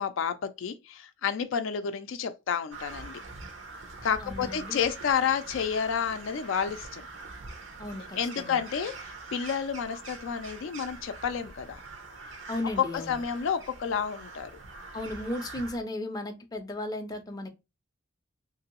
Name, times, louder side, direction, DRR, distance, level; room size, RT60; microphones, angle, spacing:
voice 1, 0.0-3.2 4.0-7.0 8.2-11.8 12.8-14.5, left 7 dB, 75° left, 0.4 m, -30 dB
Crow, 2.7-15.8, right 3 dB, 75° right, 0.7 m, -44 dB
voice 2, 4.2-4.8 7.8-8.6 12.5-13.2 14.9-17.5, left 1 dB, 20° left, 0.4 m, -35 dB
2.8 x 2.6 x 2.9 m
head